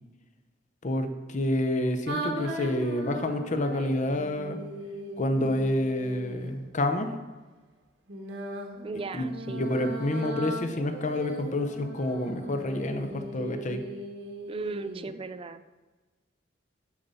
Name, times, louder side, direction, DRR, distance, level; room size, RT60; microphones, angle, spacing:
voice 1, 0.8-4.6 5.2-7.1 9.1-13.9, left 1 dB, 40° left, 6 dB, 0.8 m, -28 dB
sound 1, 2.1-6.6 8.1-15.1, right 1 dB, 75° right, 1.2 m, -38 dB
voice 2, 8.8-9.7 14.5-15.6, right 3 dB, 30° right, 12 dB, 0.4 m, -36 dB
10.5 x 4.1 x 5.5 m, 1.3 s
head